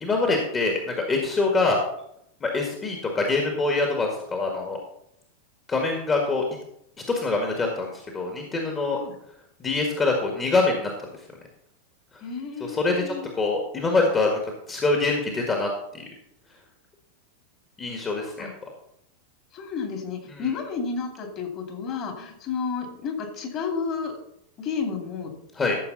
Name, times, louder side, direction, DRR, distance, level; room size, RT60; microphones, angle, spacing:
voice 1, 0.0-1.8 2.4-4.8 5.7-6.4 7.1-9.0 9.6-10.9 12.6-14.3 14.7-15.7 15.9-16.0 17.8-18.5 20.3-20.5 25.6-25.8, left 3 dB, 20° left, 1 dB, 1.9 m, -24 dB
voice 2, 12.2-13.3 18.2-18.5 19.5-24.1 24.6-25.3, left 5 dB, 35° left, 3 dB, 2.6 m, -31 dB
13.5 x 6.8 x 4.1 m, 0.74 s
figure-of-eight pair, 90°, 0 cm